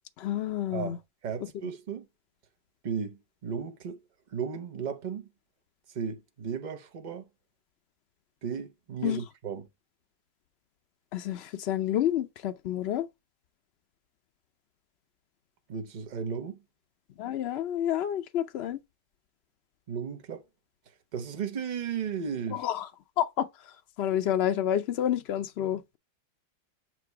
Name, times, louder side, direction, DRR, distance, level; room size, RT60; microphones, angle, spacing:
voice 1, 0.2-1.0 9.0-9.2 11.1-13.1 17.2-18.8 22.5-22.9 23.2-26.0, left 11 dB, 85° left, 0.5 m, -29 dB
voice 2, 1.2-2.1 2.8-4.0 4.3-5.3 5.9-7.3 8.4-9.7 15.7-16.6 19.9-20.4 21.1-22.7, right 6 dB, 35° right, 0.7 m, -35 dB
7.5 x 2.8 x 4.6 m
omnidirectional pair, 1.8 m